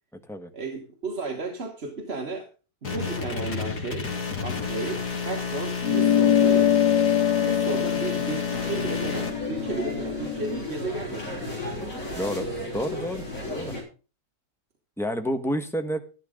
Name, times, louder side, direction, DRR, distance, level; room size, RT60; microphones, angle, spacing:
voice 1, 0.5-2.4 2.9-4.1 4.4-6.7 7.4-11.6, right 3 dB, 40° right, 2 dB, 1.6 m, -33 dB
sound 1, 2.8-9.3, left 5 dB, 70° left, 2.7 m, -31 dB
sound 2, 5.8-10.6, left 9 dB, 85° left, 1.4 m, -23 dB
sound 3, 8.5-13.8, left 1 dB, 55° left, 5.1 m, -34 dB
voice 2, 12.1-12.5 12.7-13.7 15.0-16.0, equal, ahead, 6 dB, 1.1 m, -29 dB
12.5 x 11.5 x 3.8 m, 0.35 s
omnidirectional pair, 1.7 m